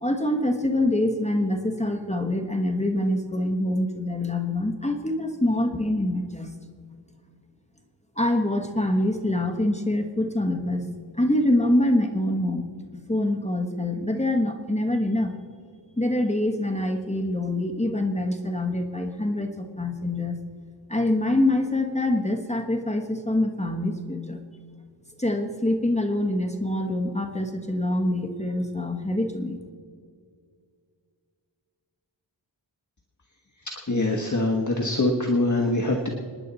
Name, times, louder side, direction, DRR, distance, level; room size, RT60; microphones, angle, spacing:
voice 1, 0.0-6.5 8.2-10.9 11.2-15.3 16.0-20.4 20.9-24.4 25.2-29.6, left 1 dB, 15° left, 3 dB, 1.2 m, -25 dB
voice 2, 33.6-36.1, left 2 dB, 40° left, 1 dB, 1.3 m, -24 dB
26.5 x 10.0 x 4.1 m, 2.1 s
wide cardioid pair, 90°, 47 cm